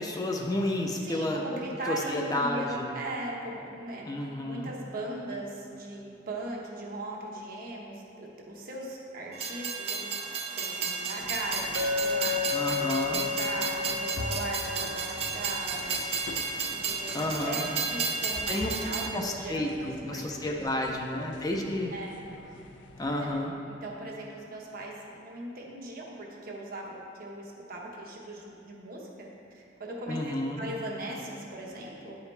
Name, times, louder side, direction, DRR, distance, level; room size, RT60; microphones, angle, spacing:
voice 1, 0.0-1.4 1.9-2.9 4.0-4.7 12.5-13.2 17.1-17.7 18.5-18.7 19.1-21.9 23.0-23.5 30.1-30.6, left 1 dB, 20° left, 0 dB, 0.5 m, -31 dB
voice 2, 1.0-4.1 4.4-16.2 16.7-20.6 20.9-21.2 21.9-22.2 23.1-23.3 23.7-29.3 29.5-32.2, right 1 dB, 55° right, -2 dB, 1.1 m, -39 dB
Train, 9.3-19.1, right 4 dB, 35° right, 0.5 m, -33 dB
sound 1, 11.2-23.3, left 2 dB, 70° left, 0.5 m, -45 dB
Chink clink, 11.8-16.2, left 5 dB, 85° right, 0.8 m, -33 dB
9.2 x 4.9 x 3.3 m, 2.8 s
head